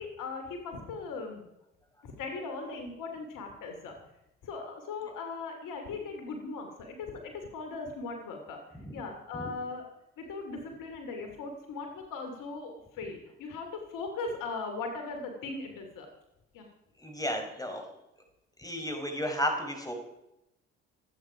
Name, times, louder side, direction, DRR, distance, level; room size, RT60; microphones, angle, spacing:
voice 1, 0.0-1.4 2.0-3.9 4.4-8.6 8.9-9.8 10.2-16.1 16.5-16.7, left 4 dB, 65° left, 4 dB, 2.7 m, -39 dB
voice 2, 17.0-17.9 18.6-19.9, equal, 10° left, 4 dB, 4.5 m, -33 dB
26.0 x 9.1 x 5.0 m, 0.90 s
hypercardioid pair, 50°, 34 cm